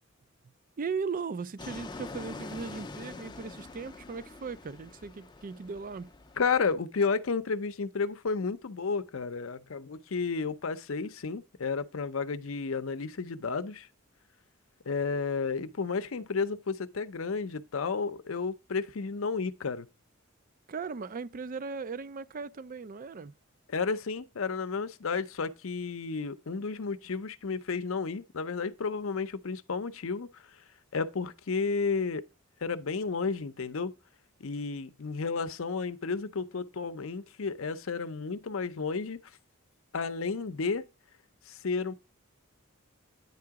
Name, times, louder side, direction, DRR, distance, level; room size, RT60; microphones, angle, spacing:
voice 1, 0.8-6.1 13.4-13.5 20.7-23.3, right 5 dB, 40° right, 0.4 m, -37 dB
Fixed-wing aircraft airplane, 1.6-6.8, left 3 dB, 20° left, 0.5 m, -45 dB
voice 2, 6.4-13.9 14.9-19.9 23.7-30.4 30.9-32.3 32.6-33.9 34.4-39.2 39.9-40.9 41.5-41.9, left 4 dB, 75° left, 0.6 m, -32 dB
9.5 x 3.8 x 4.7 m
head